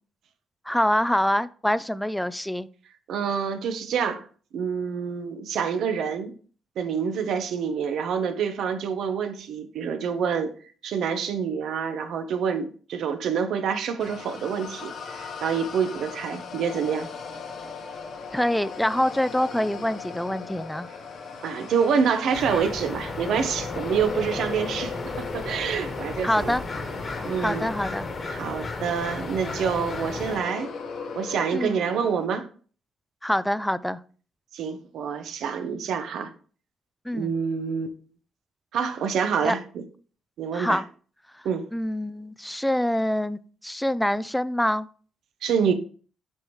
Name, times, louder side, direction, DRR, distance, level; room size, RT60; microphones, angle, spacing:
voice 1, 0.7-2.7 18.3-20.9 26.2-26.6 27.4-28.1 31.5-31.8 33.2-34.0 37.1-37.3 39.4-39.5 40.5-40.8 41.7-44.9, left 1 dB, 5° left, 16 dB, 0.3 m, -25 dB
voice 2, 3.1-4.2 4.5-6.3 6.8-10.5 10.8-17.1 21.4-26.6 27.2-27.7 28.3-30.7 31.1-32.5 34.5-36.3 37.1-37.9 38.7-39.8 40.4-40.8 41.4-41.7 45.4-45.7, right 6 dB, 75° right, 8 dB, 1.0 m, -27 dB
sound 1, 14.0-32.3, left 5 dB, 60° left, 1.0 m, -38 dB
sound 2, 22.3-30.4, left 3 dB, 35° left, 1.2 m, -34 dB
8.0 x 5.6 x 3.0 m, 0.42 s
cardioid pair, 120°, 0 cm